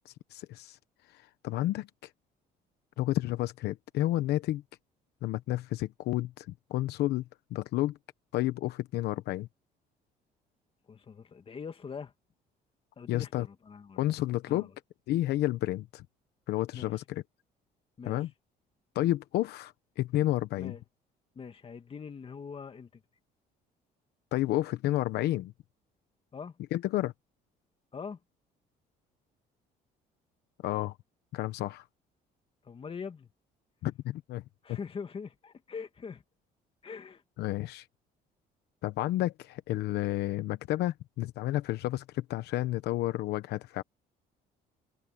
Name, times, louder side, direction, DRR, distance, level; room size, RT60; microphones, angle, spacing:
voice 1, 0.0-0.8 1.1-1.9 3.0-4.6 5.2-7.2 7.5-8.0 8.3-9.5 13.1-13.5 14.0-14.7 15.1-16.0 16.5-17.2 18.1-18.3 18.9-20.7 24.3-25.5 26.7-27.1 30.6-31.0 31.3-31.8 33.8-34.4 34.7-34.8 37.4-37.8 38.8-43.8, left 15 dB, 80° left, 1.0 m, -31 dB
voice 2, 10.9-12.1 13.0-14.1 14.5-14.7 16.7-16.9 18.0-18.2 20.6-20.8 21.4-23.0 26.3-26.6 27.9-28.2 32.6-33.3 34.6-36.2 36.8-37.2, left 6 dB, 35° left, 2.1 m, -42 dB
cardioid pair, 110°, 17 cm